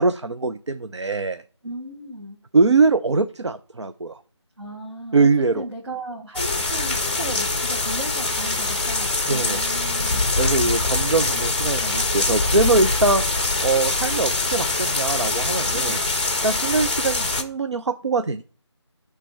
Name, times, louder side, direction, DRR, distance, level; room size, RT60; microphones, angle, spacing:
voice 1, 0.0-1.4 2.5-4.2 5.1-5.6 9.3-9.6 10.4-13.2 13.6-16.0 16.4-18.4, right 3 dB, 70° right, 10 dB, 0.5 m, -22 dB
voice 2, 1.6-2.4 4.6-10.2 15.7-16.0, right 1 dB, 55° right, -3 dB, 2.0 m, -35 dB
sound 1, 6.4-17.4, left 3 dB, 20° left, 0.7 m, -23 dB
10.0 x 3.4 x 4.4 m, 0.41 s
figure-of-eight pair, 165°, 15 cm